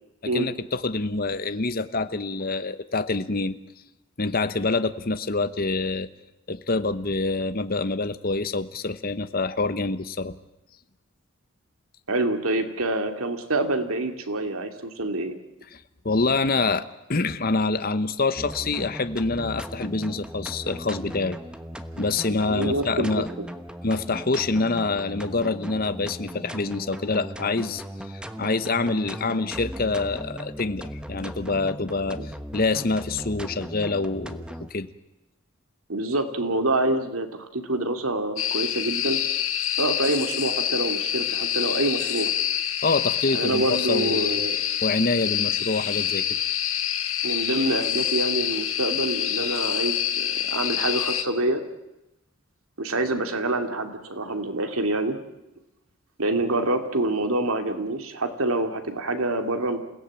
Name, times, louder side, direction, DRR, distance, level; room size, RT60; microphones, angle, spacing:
voice 1, 0.2-3.6 4.2-6.1 6.5-10.4 15.7-15.8 16.0-16.8 17.1-21.4 22.0-23.3 23.8-34.9 42.8-44.4 44.8-46.4, left 3 dB, 45° left, 11 dB, 1.0 m, -26 dB
voice 2, 12.1-15.4 22.5-23.1 23.4-23.5 32.2-32.3 35.9-39.2 39.8-42.3 43.3-44.6 47.2-51.6 52.8-55.2 56.2-59.8, right 2 dB, 85° right, 6 dB, 2.6 m, -26 dB
sound 1, 18.4-34.7, equal, 5° right, 1.1 m, -38 dB
sound 2, 38.4-51.2, left 10 dB, 75° left, 1.7 m, -26 dB
28.0 x 17.0 x 8.9 m, 0.92 s
head